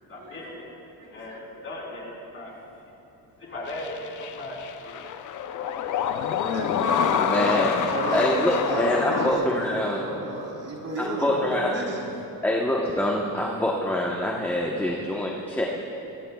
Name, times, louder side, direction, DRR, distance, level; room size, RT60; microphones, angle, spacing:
voice 1, 0.0-2.5 3.4-4.6 4.8-5.0 5.6-6.4, left 1 dB, 35° left, -3 dB, 3.7 m, -39 dB
voice 2, 1.0-1.7 6.4-12.1, right 1 dB, 50° right, -2 dB, 3.3 m, -32 dB
sound 1, 3.7-9.3, left 8 dB, 60° left, 0.6 m, -27 dB
voice 3, 7.0-10.0 11.0-11.8 12.4-15.7, left 1 dB, 5° left, -2 dB, 1.0 m, -25 dB
22.5 x 17.0 x 2.3 m, 3.0 s
cardioid pair, 140°, 34 cm